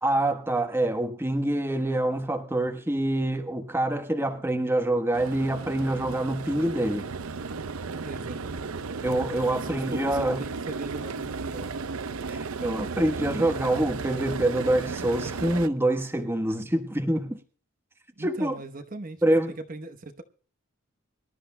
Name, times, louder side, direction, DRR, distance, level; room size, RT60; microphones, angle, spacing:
voice 1, 0.0-7.1 9.0-10.4 12.3-17.4 18.2-18.5 19.2-19.5, right 1 dB, 10° right, 1.1 m, -26 dB
sound 1, 5.1-15.7, right 4 dB, 85° right, 0.7 m, -34 dB
voice 2, 8.0-8.9 9.5-11.7 18.2-20.2, right 2 dB, 40° right, 1.0 m, -39 dB
24.5 x 12.5 x 2.2 m
head